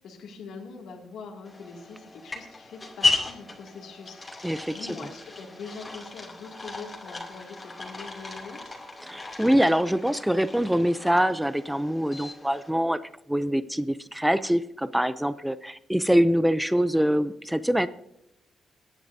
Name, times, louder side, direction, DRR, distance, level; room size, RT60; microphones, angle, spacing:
voice 1, 0.0-4.2 4.7-8.8, left 4 dB, 80° left, 0 dB, 2.3 m, -43 dB
sound 1, 1.4-12.7, left 3 dB, 20° left, 2.6 m, -35 dB
voice 2, 4.4-5.1 9.0-13.0 13.3-17.9, equal, 5° right, 14 dB, 0.4 m, -24 dB
23.0 x 10.5 x 2.7 m, 0.79 s
cardioid pair, 115°, 0 cm